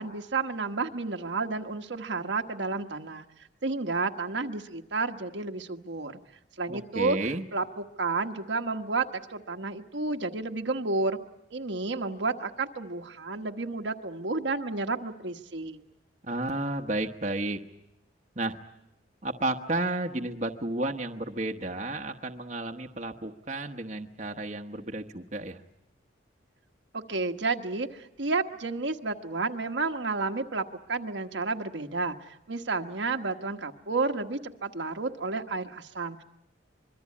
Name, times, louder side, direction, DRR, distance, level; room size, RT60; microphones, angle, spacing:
voice 1, 0.0-3.3 3.6-6.2 6.6-7.2 7.5-11.2 11.5-15.8 26.9-36.2, right 3 dB, 75° right, 5 dB, 1.3 m, -31 dB
voice 2, 6.7-7.4 16.3-17.6 18.3-18.6 19.2-25.6, right 2 dB, 40° right, 3 dB, 1.1 m, -32 dB
25.5 x 22.5 x 8.5 m, 0.83 s
head